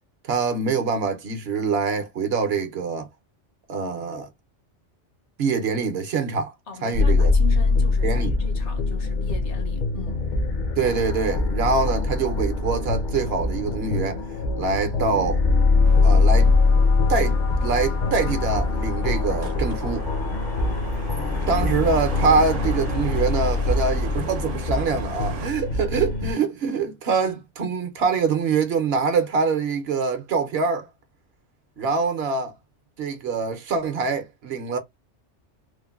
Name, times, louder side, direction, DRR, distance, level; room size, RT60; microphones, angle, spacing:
voice 1, 0.2-3.1 3.7-4.3 5.4-6.5 6.8-7.3 8.0-8.3 10.8-14.2 14.6-15.4 16.0-16.5 17.1-20.1 21.5-30.9 31.8-32.5 33.0-34.8, right 4 dB, 65° right, 0.8 m, -24 dB
voice 2, 6.7-10.2, left 3 dB, 70° left, 1.1 m, -39 dB
sound 1, 6.9-26.3, left 3 dB, 50° left, 0.6 m, -22 dB
sound 2, 15.8-25.5, right 6 dB, 90° right, 0.9 m, -40 dB
3.1 x 2.1 x 2.3 m
omnidirectional pair, 1.2 m